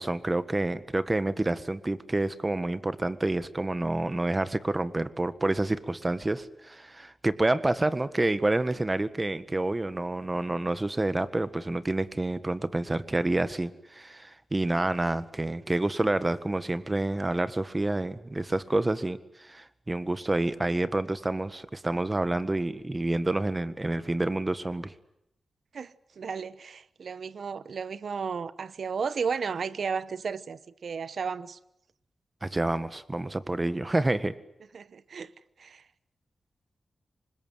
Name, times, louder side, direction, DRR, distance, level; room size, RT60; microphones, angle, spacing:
voice 1, 0.0-24.9 32.4-34.3, right 2 dB, 25° right, 1.7 m, -28 dB
voice 2, 25.7-31.6 34.7-35.3 35.6-35.8, right 6 dB, 75° right, 1.0 m, -34 dB
25.0 x 21.0 x 9.3 m
cardioid pair, 60°, 0 cm